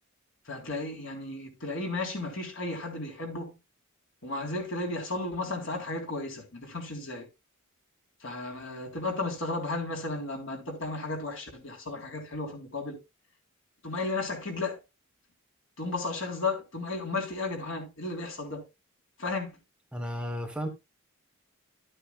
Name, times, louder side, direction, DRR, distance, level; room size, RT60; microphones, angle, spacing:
voice 1, 0.5-3.6 4.2-7.3 8.2-13.0 13.8-14.8 15.8-18.6 19.2-19.6, left 3 dB, 60° left, 3.5 m, -34 dB
voice 2, 19.9-20.7, equal, 5° right, 1.2 m, -33 dB
12.0 x 9.0 x 2.3 m
head